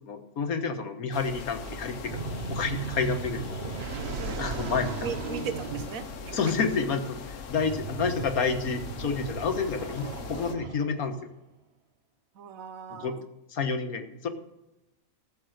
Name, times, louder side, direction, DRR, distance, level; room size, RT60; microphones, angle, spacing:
voice 1, 0.0-3.6 4.4-5.4 6.3-11.2 12.9-13.2 13.5-14.3, left 5 dB, 85° left, 6 dB, 1.7 m, -30 dB
sound 1, 1.1-10.5, left 6 dB, 65° left, 1.3 m, -41 dB
sound 2, 1.6-11.1, right 5 dB, 50° right, 1.2 m, -37 dB
voice 2, 5.0-6.4 12.4-13.2, right 6 dB, 75° right, 11 dB, 1.3 m, -37 dB
13.5 x 7.4 x 6.4 m, 0.95 s
omnidirectional pair, 1.5 m